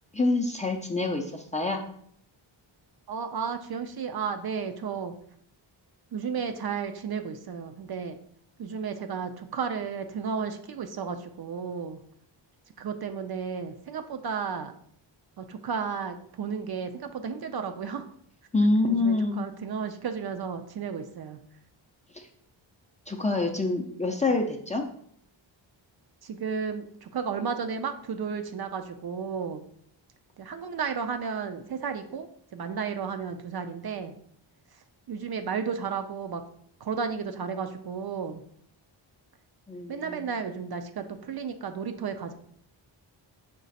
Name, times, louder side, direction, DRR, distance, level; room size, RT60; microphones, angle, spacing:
voice 1, 0.1-1.8 18.5-19.5 22.1-22.2 23.1-24.9 39.7-40.3, left 2 dB, 15° left, 2 dB, 0.4 m, -26 dB
voice 2, 3.1-5.1 6.1-8.2 8.6-12.0 12.8-14.7 15.4-18.0 18.8-21.4 26.2-29.6 30.4-34.1 35.1-36.4 36.8-38.4 39.9-42.3, right 6 dB, 55° right, 7 dB, 0.5 m, -33 dB
5.2 x 2.4 x 4.0 m, 0.65 s
wide cardioid pair, 100°, 48 cm